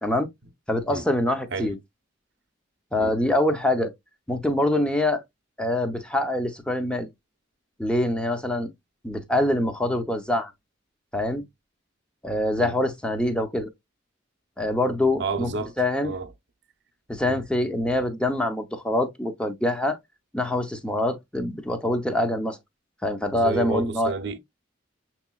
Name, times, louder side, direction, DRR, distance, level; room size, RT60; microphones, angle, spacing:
voice 1, 0.7-1.8 2.9-3.9 4.3-5.2 5.6-7.1 7.8-8.7 9.0-10.5 11.1-11.4 12.2-13.7 14.6-15.5 15.8-16.1 17.1-20.0 20.3-22.6 23.0-24.1, left 1 dB, 5° left, 0.7 m, -24 dB
voice 2, 15.2-15.7 16.0-16.3 17.3-17.4 23.3-24.4, right 3 dB, 60° right, 0.7 m, -30 dB
6.4 x 3.0 x 2.3 m
head